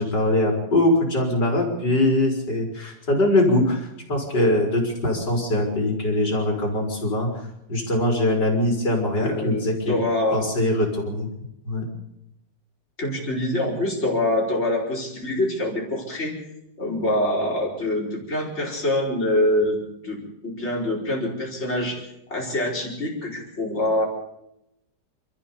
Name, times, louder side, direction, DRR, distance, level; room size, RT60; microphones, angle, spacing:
voice 1, 0.0-7.3 7.7-10.0 10.3-11.3 11.6-11.9, left 1 dB, 70° left, 0 dB, 5.1 m, -22 dB
voice 2, 9.2-10.4 13.0-16.3 16.8-22.0 22.3-24.1, left 1 dB, 35° left, -3 dB, 5.3 m, -25 dB
28.5 x 13.5 x 7.1 m, 0.85 s
omnidirectional pair, 1.9 m